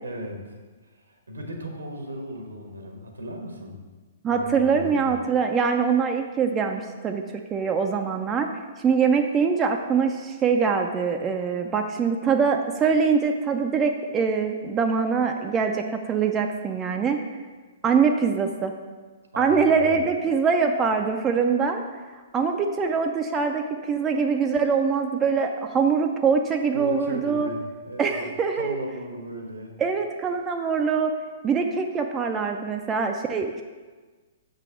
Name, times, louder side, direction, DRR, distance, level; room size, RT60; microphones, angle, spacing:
voice 1, 0.0-3.9 4.3-5.2 19.3-20.0 26.7-29.8, equal, 80° right, 3 dB, 1.2 m, -36 dB
voice 2, 4.2-7.2 7.5-8.5 8.8-17.2 17.8-18.7 19.4-21.8 22.3-27.5 28.0-28.8 29.8-31.1 31.4-33.6, right 5 dB, 20° right, 4 dB, 0.5 m, -23 dB
6.5 x 3.9 x 6.1 m, 1.4 s
figure-of-eight pair, 115°, 0 cm